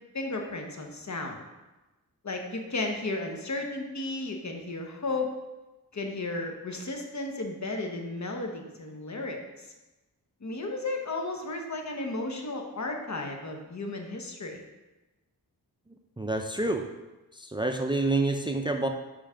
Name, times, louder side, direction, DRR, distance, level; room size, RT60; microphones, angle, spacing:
voice 1, 0.1-1.4 2.2-5.4 5.9-9.7 10.4-14.6, left 2 dB, 50° left, 2 dB, 1.1 m, -34 dB
voice 2, 16.2-16.9 17.3-18.9, right 2 dB, 15° right, 5 dB, 0.5 m, -28 dB
5.5 x 5.2 x 5.0 m, 1.1 s
cardioid pair, 65°, 36 cm